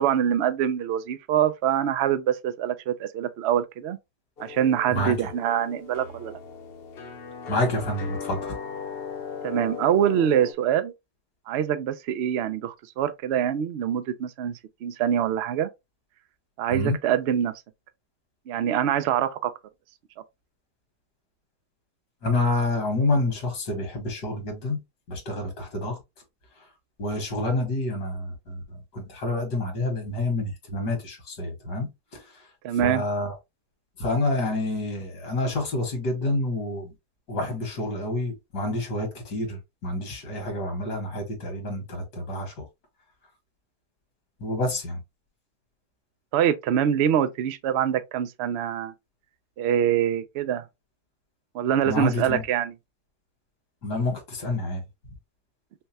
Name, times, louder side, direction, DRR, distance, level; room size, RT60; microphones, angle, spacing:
voice 1, 0.0-4.0 4.4-6.4 9.4-10.9 11.5-15.7 16.6-17.5 18.5-19.5 32.6-33.0 46.3-48.9 49.6-50.6 51.5-52.7, right 9 dB, 85° right, 0.5 m, -24 dB
sound 1, 4.4-10.5, left 6 dB, 50° left, 0.7 m, -38 dB
voice 2, 7.5-8.5 16.7-17.0 22.2-24.8 25.1-26.0 27.0-32.3 32.8-33.3 34.0-36.9 37.3-42.6 44.4-45.0 51.9-52.4 53.8-54.8, left 2 dB, 80° left, 2.1 m, -28 dB
5.5 x 2.2 x 2.8 m
omnidirectional pair, 1.8 m